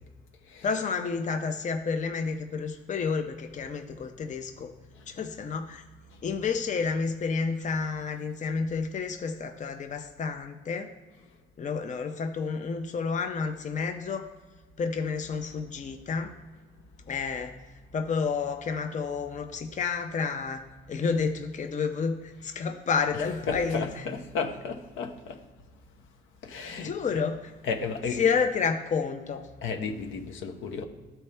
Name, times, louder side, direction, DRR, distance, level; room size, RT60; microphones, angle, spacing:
voice 1, 0.6-4.7 5.1-5.8 6.2-10.9 11.6-14.3 14.8-16.3 17.1-17.6 17.9-20.6 20.9-23.8 26.8-27.4 28.2-29.5, left 5 dB, 40° left, 6 dB, 0.7 m, -30 dB
voice 2, 23.1-25.4 26.4-27.2 27.6-28.3 29.6-30.8, left 5 dB, 80° left, 4 dB, 1.0 m, -33 dB
12.5 x 4.4 x 3.3 m, 1.3 s
cardioid pair, 90°, 20 cm